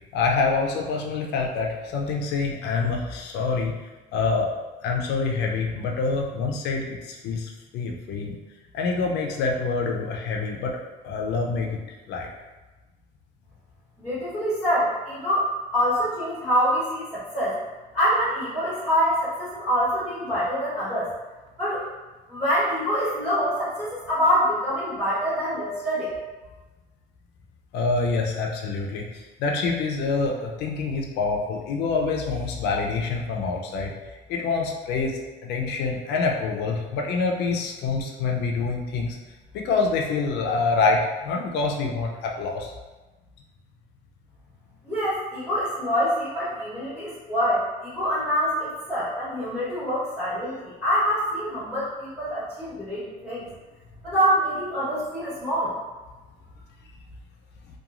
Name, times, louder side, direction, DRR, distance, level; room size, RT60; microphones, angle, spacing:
voice 1, 0.1-3.7 4.1-4.5 4.8-8.4 8.7-10.8 11.0-11.8 12.1-12.3 27.7-33.9 34.3-39.2 39.5-42.7, left 4 dB, 80° left, 0 dB, 0.5 m, -26 dB
voice 2, 14.0-17.6 17.9-21.1 21.6-21.8 22.3-26.1 44.8-53.5 54.0-55.7, equal, 5° right, -12 dB, 1.2 m, -25 dB
3.0 x 2.3 x 2.4 m, 1.2 s
cardioid pair, 110°, 17 cm